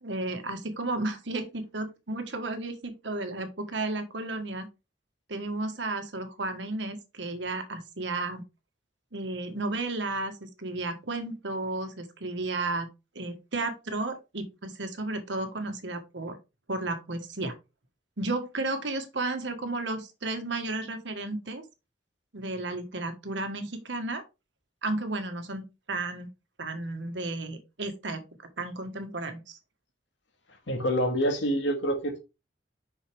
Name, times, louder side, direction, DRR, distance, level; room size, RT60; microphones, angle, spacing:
voice 1, 0.0-4.7 5.3-8.4 9.1-12.9 13.1-16.4 16.7-17.5 18.2-21.6 22.3-24.2 24.8-25.6 25.9-26.3 26.6-28.2 28.6-29.6, right 2 dB, 85° right, 1.5 m, -33 dB
voice 2, 30.7-32.2, equal, 85° left, 2.0 m, -26 dB
6.3 x 5.7 x 3.4 m
head